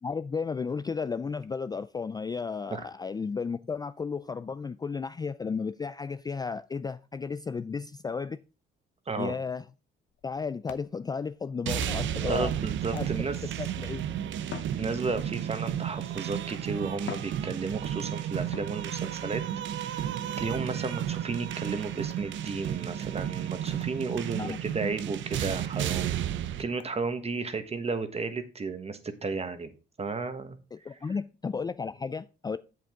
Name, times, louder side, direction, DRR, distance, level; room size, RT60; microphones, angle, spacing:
voice 1, 0.0-8.4 9.2-9.6 10.2-12.5 12.9-13.1 13.6-14.0 24.4-24.6 30.7-32.6, left 5 dB, 20° left, 0.3 m, -33 dB
voice 2, 9.1-9.4 12.2-13.4 14.8-19.4 19.8-26.2 26.6-29.7 30.0-30.6, right 4 dB, 30° right, 1.4 m, -33 dB
sound 1, 10.1-12.3 12.9-13.5 14.4-15.5 16.4-16.5 17.0-18.0 18.5-19.2 20.7-21.0 22.1-22.3 22.9-23.0 23.4-23.5 23.8-24.0 24.3-24.4 24.8-24.9 25.3-25.4 25.8-25.9 26.8-26.9, left 9 dB, 70° left, 0.9 m, -45 dB
sound 2, 11.7-26.6, right 10 dB, 70° right, 0.7 m, -33 dB
7.8 x 7.8 x 3.7 m
cardioid pair, 90°, 20 cm